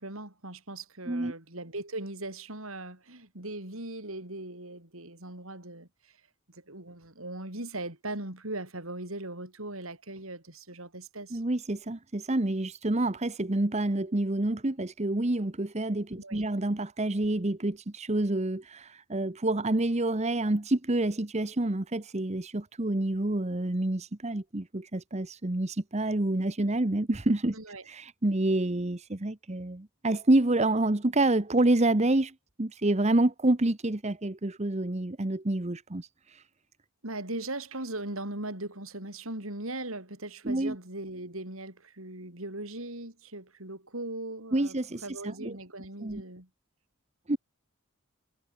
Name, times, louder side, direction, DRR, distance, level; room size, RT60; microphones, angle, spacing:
voice 1, 0.0-6.2 6.5-11.4 16.1-16.4 27.5-27.8 37.0-44.8 45.0-46.5, right 2 dB, 75° right, 6.8 m, -39 dB
voice 2, 11.3-27.5 27.9-32.3 32.6-36.4 40.4-40.8 44.5-45.6 46.0-46.2 47.3-47.4, right 2 dB, 30° right, 1.0 m, -28 dB
head